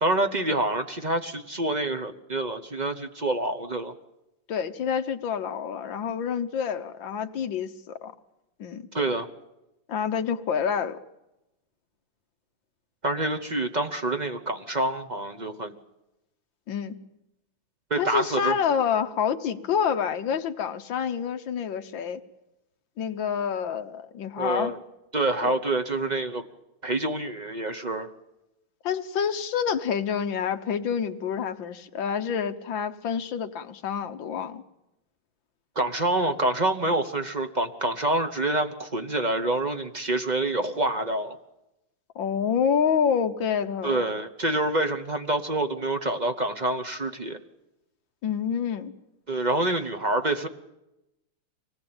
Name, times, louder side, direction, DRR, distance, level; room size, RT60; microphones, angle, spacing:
voice 1, 0.0-3.9 8.9-9.3 13.0-15.7 17.9-18.5 24.4-24.8 25.1-26.4 26.8-28.1 35.7-41.4 43.8-47.4 49.3-50.5, right 2 dB, 30° right, 7 dB, 0.8 m, -27 dB
voice 2, 4.5-8.1 8.6-8.9 9.9-11.0 16.7-17.0 18.0-22.2 23.0-24.7 25.4-25.6 28.8-34.6 42.2-44.1 48.2-48.9, left 7 dB, 65° left, 8 dB, 1.8 m, -28 dB
24.5 x 19.0 x 8.9 m, 0.92 s
omnidirectional pair, 2.3 m